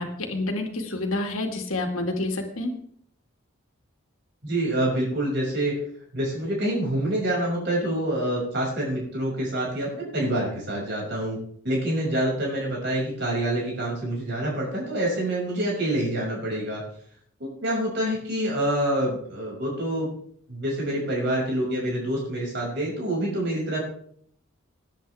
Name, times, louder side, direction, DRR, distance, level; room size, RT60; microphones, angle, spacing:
voice 1, 0.0-2.7, left 2 dB, 85° left, 3 dB, 2.3 m, -28 dB
voice 2, 4.4-5.7 6.1-11.4 11.6-16.8 17.4-20.1 20.5-23.8, right 1 dB, 55° right, -3 dB, 6.3 m, -26 dB
19.0 x 10.0 x 3.5 m, 0.63 s
head